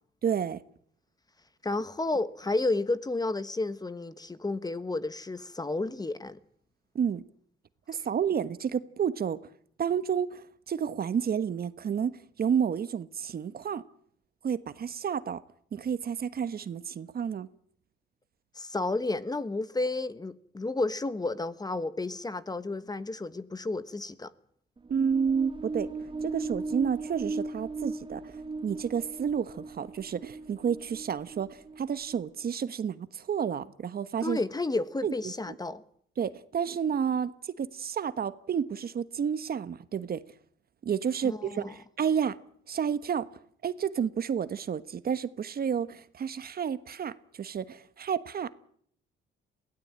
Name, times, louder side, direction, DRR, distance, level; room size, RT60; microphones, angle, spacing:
voice 1, 0.2-0.6 6.9-7.2 7.9-9.4 9.8-13.8 14.4-15.4 15.7-17.5 24.9-25.9 26.2-34.4 35.0-35.3 36.2-40.2 40.8-42.4 42.7-43.3 43.6-48.5, right 7 dB, 50° right, 1.2 m, -30 dB
voice 2, 1.6-6.4 18.5-24.3 34.2-35.8 41.2-41.7, left 2 dB, 20° left, 1.3 m, -31 dB
sound 1, 24.8-32.5, right 3 dB, 25° right, 1.1 m, -38 dB
22.5 x 16.5 x 8.8 m
cardioid pair, 90°, 20 cm